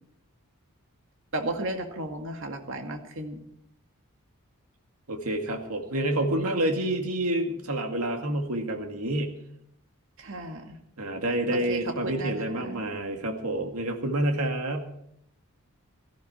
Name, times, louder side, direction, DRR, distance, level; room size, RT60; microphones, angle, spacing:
voice 1, 1.3-3.4 10.2-10.8 11.5-12.8, right 1 dB, 60° right, 4 dB, 2.2 m, -34 dB
voice 2, 5.1-9.4 11.0-14.8, right 1 dB, 80° right, 4 dB, 2.3 m, -28 dB
17.5 x 14.0 x 4.4 m, 0.73 s
head